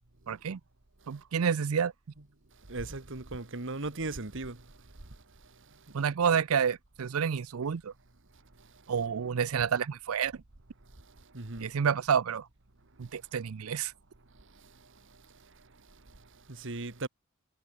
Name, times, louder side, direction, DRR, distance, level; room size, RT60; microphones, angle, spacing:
voice 1, 0.3-0.6 1.1-1.9 5.9-7.9 8.9-10.3 11.6-12.4 13.0-13.9, right 7 dB, 85° right, 0.5 m, -29 dB
voice 2, 2.7-4.7 5.9-6.0 11.3-11.7 16.5-17.1, right 2 dB, 65° right, 1.8 m, -37 dB
head